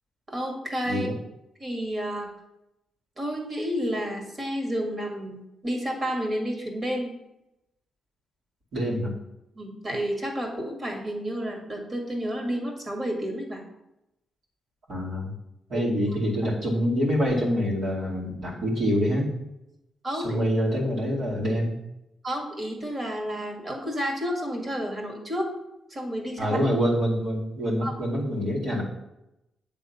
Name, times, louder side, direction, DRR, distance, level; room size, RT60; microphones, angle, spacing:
voice 1, 0.3-1.1 1.6-2.3 3.2-7.1 9.6-13.6 15.7-15.8 20.0-20.4 22.2-25.5 25.9-26.6 27.8-27.9, equal, 30° right, 1 dB, 1.9 m, -30 dB
voice 2, 8.7-9.1 14.9-15.3 15.7-19.3 20.1-21.7 26.4-28.8, equal, 70° right, -6 dB, 2.3 m, -26 dB
8.0 x 3.6 x 5.6 m, 0.89 s
cardioid pair, 95°, 0 cm